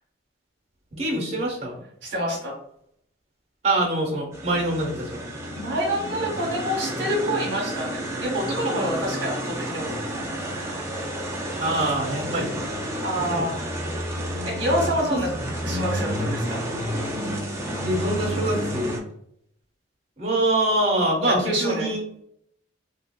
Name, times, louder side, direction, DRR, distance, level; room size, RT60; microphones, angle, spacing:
voice 1, 0.9-1.8 3.6-5.2 11.6-12.5 13.3-13.5 15.1-15.2 17.8-18.9 20.2-22.0, right 1 dB, 30° right, -3 dB, 1.0 m, -24 dB
voice 2, 2.0-2.5 5.6-10.3 13.0-13.7 14.4-15.3 15.6-16.6 21.2-21.9, equal, 60° right, -2 dB, 0.9 m, -27 dB
sound 1, 4.3-19.0, equal, 15° right, 0.4 m, -30 dB
2.9 x 2.6 x 2.2 m, 0.71 s
head